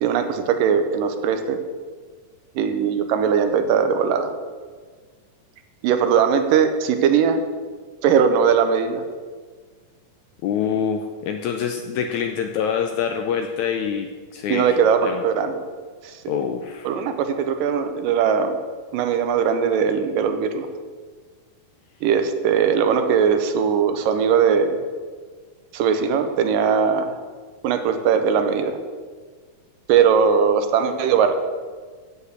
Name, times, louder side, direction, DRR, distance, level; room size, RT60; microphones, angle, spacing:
voice 1, 0.0-1.6 2.6-4.3 5.8-7.4 8.0-9.0 14.5-15.6 16.0-16.4 16.8-18.6 18.9-20.7 22.0-24.8 25.7-27.2 27.6-28.8 29.9-31.3, right 7 dB, 80° right, 8 dB, 2.4 m, -20 dB
voice 2, 10.4-14.7 15.0-15.2 16.3-16.9, left 7 dB, 80° left, 5 dB, 1.7 m, -25 dB
8.2 x 8.1 x 8.1 m, 1.5 s
omnidirectional pair, 4.0 m